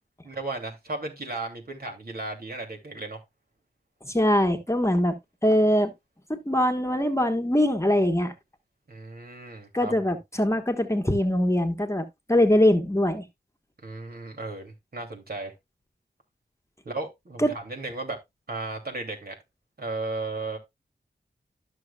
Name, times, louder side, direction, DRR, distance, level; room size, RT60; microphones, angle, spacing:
voice 1, 0.2-3.2 8.9-10.1 13.8-15.5 16.8-18.2 18.5-19.4 19.8-20.6, right 2 dB, 55° right, 2.8 m, -35 dB
voice 2, 4.0-5.2 5.4-5.9 6.3-8.3 9.7-13.2 17.4-17.5, left 1 dB, 15° left, 1.3 m, -22 dB
12.5 x 6.5 x 2.3 m
wide cardioid pair, 75°, 18 cm